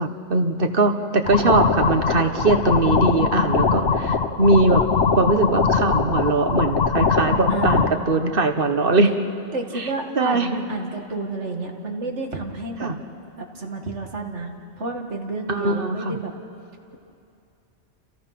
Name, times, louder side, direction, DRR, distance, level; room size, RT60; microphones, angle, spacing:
voice 1, 0.0-4.8 5.1-9.1 9.7-9.9 10.2-10.6 12.8-13.0 15.5-16.2, right 3 dB, 50° right, 7 dB, 1.5 m, -21 dB
sound 1, 1.3-7.9, left 5 dB, 65° left, 1.4 m, -21 dB
voice 2, 7.5-8.0 9.5-12.9 13.4-16.3, right 3 dB, 85° right, 2 dB, 2.4 m, -30 dB
29.5 x 28.5 x 6.0 m, 2.6 s
omnidirectional pair, 1.2 m